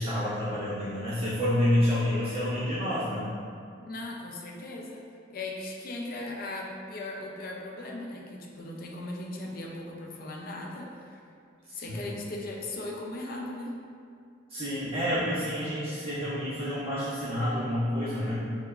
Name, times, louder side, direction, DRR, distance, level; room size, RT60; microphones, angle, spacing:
voice 1, 0.0-3.3 11.7-12.1 14.5-18.4, left 1 dB, 35° right, -14 dB, 1.2 m, -28 dB
voice 2, 3.8-5.0 5.3-11.2 11.7-13.7, left 2 dB, 50° left, 0 dB, 0.4 m, -38 dB
3.3 x 2.9 x 2.4 m, 2.3 s
head